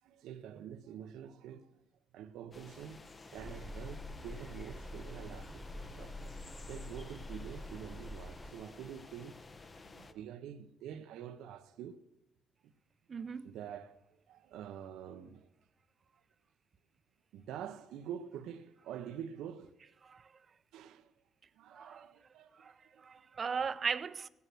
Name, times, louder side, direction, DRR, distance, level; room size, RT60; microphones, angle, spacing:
voice 1, 0.0-1.8 2.1-3.1 3.3-6.2 6.7-9.4 9.9-12.0 12.6-12.7 13.4-15.5 17.3-19.9 20.7-21.1 21.5-23.7, right 9 dB, 90° right, 0.8 m, -47 dB
sound 1, 2.5-10.1, left 3 dB, 35° left, 1.1 m, -53 dB
sound 2, 3.4-8.5, left 1 dB, 5° left, 1.7 m, -46 dB
voice 2, 13.1-13.5 20.1-20.2 21.7-22.0 22.6-22.7 23.0-24.3, right 6 dB, 45° right, 0.7 m, -37 dB
17.0 x 9.6 x 6.3 m
cardioid pair, 90°, 0 cm